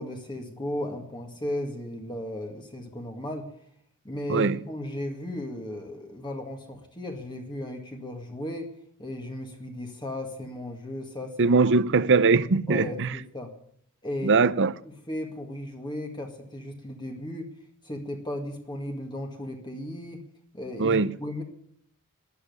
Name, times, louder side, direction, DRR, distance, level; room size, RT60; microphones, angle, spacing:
voice 1, 0.0-3.4 4.0-8.7 9.0-11.6 12.7-13.5 14.0-14.5 14.8-17.5 17.8-20.2 20.5-21.4, left 1 dB, 20° left, 2.0 m, -35 dB
voice 2, 11.4-13.1 14.2-14.7 20.8-21.1, right 4 dB, 55° right, 0.7 m, -21 dB
12.5 x 9.9 x 9.7 m
head